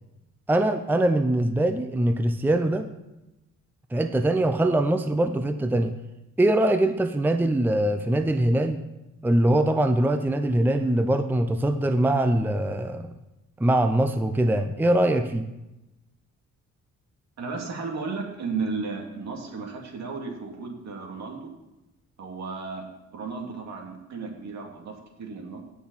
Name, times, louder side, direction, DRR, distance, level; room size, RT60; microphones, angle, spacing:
voice 1, 0.5-2.9 3.9-5.9 6.4-8.8 9.2-13.1 13.6-15.5, right 1 dB, 5° right, 8 dB, 0.6 m, -22 dB
voice 2, 17.4-21.5 22.2-22.8 23.1-25.6, right 4 dB, 65° right, 0 dB, 2.7 m, -34 dB
17.0 x 6.2 x 4.2 m, 0.98 s
cardioid pair, 90°, 30 cm